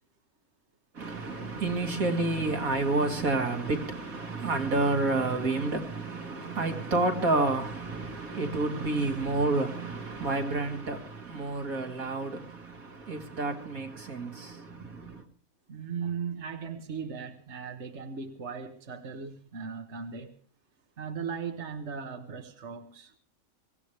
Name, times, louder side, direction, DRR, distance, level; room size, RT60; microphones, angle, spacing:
voice 1, 0.9-15.3, right 2 dB, 75° right, 2.7 m, -29 dB
voice 2, 15.7-20.3 21.0-23.1, right 6 dB, 55° right, 1.6 m, -37 dB
24.0 x 17.5 x 3.3 m
omnidirectional pair, 1.5 m